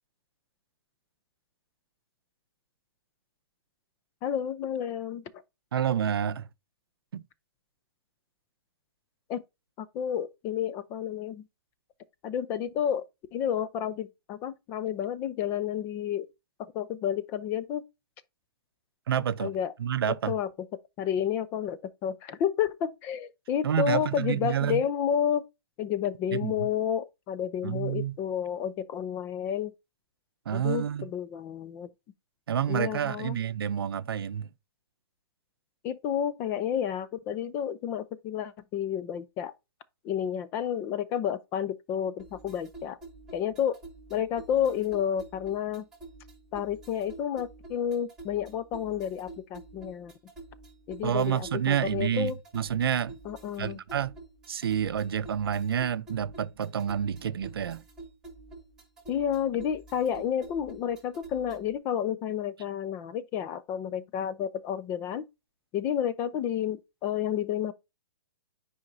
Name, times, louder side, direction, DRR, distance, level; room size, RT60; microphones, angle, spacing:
voice 1, 4.2-5.2 9.3-9.4 9.8-11.4 12.2-13.1 13.3-16.3 16.7-17.8 19.4-19.7 20.3-20.5 21.0-25.4 25.8-29.7 30.5-31.9 32.7-33.4 35.8-39.5 40.0-43.0 43.3-43.8 44.1-45.9 46.5-50.1 50.9-52.4 53.3-53.8 59.1-65.2 65.7-67.7, left 9 dB, 15° left, 0.3 m, -30 dB
voice 2, 5.7-6.5 7.1-7.3 19.1-19.5 19.8-20.3 23.6-24.8 26.3-26.7 27.6-28.2 30.5-31.1 32.5-34.5 51.0-53.2 53.6-54.1 54.5-57.8, right 9 dB, 75° right, 0.6 m, -29 dB
sound 1, 42.2-61.8, right 3 dB, 5° right, 2.1 m, -48 dB
9.7 x 4.9 x 2.7 m
hypercardioid pair, 160°, 13 cm